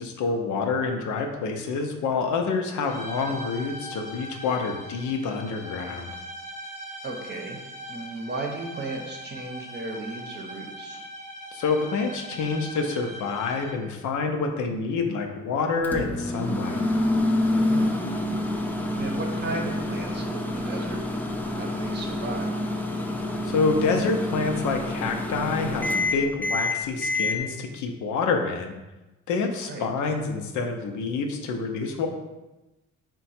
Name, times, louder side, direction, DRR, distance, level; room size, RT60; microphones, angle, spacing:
voice 1, 0.0-6.2 11.5-16.9 23.4-28.7 29.3-32.1, left 4 dB, 75° left, 3 dB, 0.6 m, -27 dB
sound 1, 2.8-14.0, right 1 dB, 25° left, 0.8 m, -40 dB
voice 2, 7.0-7.6 7.9-11.0 17.6-17.9 19.0-22.5 29.7-29.8, right 2 dB, 35° right, 1 dB, 0.7 m, -35 dB
Microwave oven, 15.8-27.4, left 1 dB, 5° left, 0.4 m, -27 dB
3.7 x 2.2 x 4.2 m, 1.0 s
cardioid pair, 90°, 30 cm